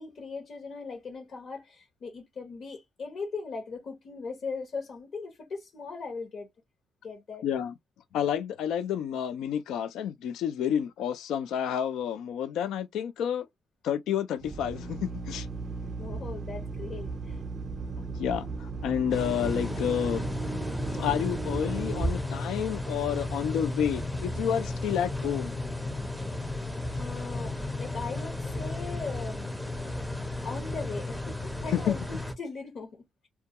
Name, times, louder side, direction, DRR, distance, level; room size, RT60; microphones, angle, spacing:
voice 1, 0.0-6.5 7.0-7.5 15.8-17.4 27.0-29.9 30.4-33.3, left 4 dB, 60° left, 0.8 m, -39 dB
voice 2, 7.4-7.7 8.1-13.5 13.8-15.5 18.2-20.3 20.9-25.6 31.7-31.9, left 9 dB, 80° left, 0.3 m, -30 dB
Drill, 14.4-23.0, right 4 dB, 45° right, 0.5 m, -37 dB
sound 1, 19.1-32.3, left 2 dB, 5° left, 0.5 m, -34 dB
2.2 x 2.2 x 2.8 m
cardioid pair, 90°, 0 cm